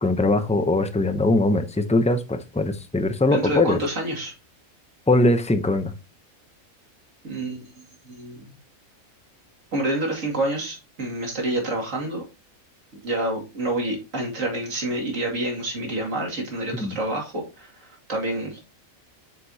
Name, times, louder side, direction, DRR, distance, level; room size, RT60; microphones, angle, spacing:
voice 1, 0.0-3.8 5.1-5.9 16.8-17.0, left 2 dB, 10° left, 0.3 m, -21 dB
voice 2, 3.3-4.3 7.2-7.6 8.0-8.4 9.7-12.2 13.0-18.6, right 1 dB, 70° right, 2.8 m, -28 dB
7.8 x 5.9 x 2.8 m
omnidirectional pair, 1.4 m